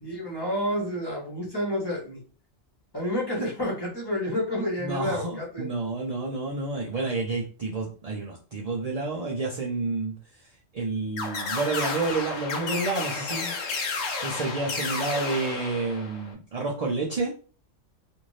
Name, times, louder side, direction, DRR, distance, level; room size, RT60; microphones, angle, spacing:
voice 1, 0.0-2.2 2.9-5.7, equal, 20° left, -4 dB, 1.0 m, -29 dB
voice 2, 4.8-10.1 10.7-13.5 14.2-17.3, right 3 dB, 55° right, -2 dB, 0.4 m, -29 dB
sound 1, 11.2-16.3, left 3 dB, 75° left, 1.0 m, -32 dB
2.6 x 2.5 x 3.1 m, 0.38 s
omnidirectional pair, 1.4 m